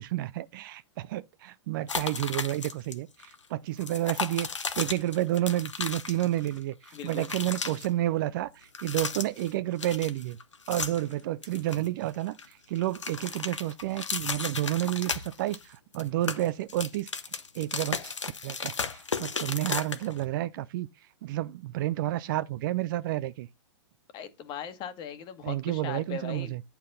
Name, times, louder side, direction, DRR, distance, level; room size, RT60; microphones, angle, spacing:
voice 1, 0.0-4.5 4.8-8.5 8.8-10.4 10.7-17.1 17.5-18.1 18.4-20.9 21.2-23.5 25.4-26.6, right 15 dB, 45° right, 0.6 m, -30 dB
sound 1, 1.9-2.9 3.2-3.4 3.8-6.6 6.8-7.9 8.6-9.5 9.8-11.1 11.4-12.5 12.8-15.6 15.9-20.2, left 5 dB, 90° left, 1.2 m, -35 dB
voice 2, 6.9-7.3 24.1-26.5, left 7 dB, 30° left, 1.5 m, -39 dB
9.3 x 5.8 x 4.1 m
hypercardioid pair, 120°, 15 cm